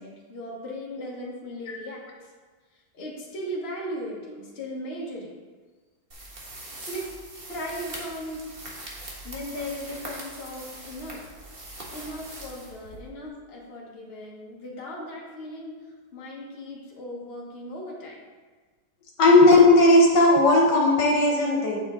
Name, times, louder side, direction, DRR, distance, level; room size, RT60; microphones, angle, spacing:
voice 1, 0.0-2.0 2.9-5.4 6.7-7.1 7.5-8.4 9.2-11.2 11.9-15.7 16.1-18.2, equal, 35° left, -4 dB, 1.5 m, -37 dB
sound 1, 6.1-13.3, right 1 dB, 35° right, 1.3 m, -41 dB
voice 2, 19.2-21.8, left 2 dB, 75° left, -1 dB, 1.8 m, -16 dB
9.1 x 5.4 x 3.8 m, 1.4 s
omnidirectional pair, 1.9 m